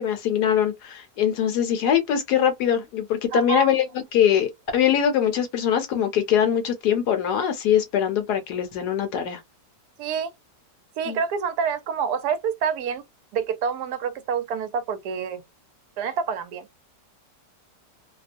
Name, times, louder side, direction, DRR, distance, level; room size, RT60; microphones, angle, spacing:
voice 1, 0.0-3.8 4.1-9.4 11.1-11.2, left 9 dB, 70° left, 1.2 m, -22 dB
voice 2, 3.3-3.7 10.0-10.3 11.0-13.0 13.3-15.4 16.0-16.7, right 6 dB, 75° right, 1.0 m, -27 dB
2.9 x 2.0 x 2.5 m
omnidirectional pair, 1.9 m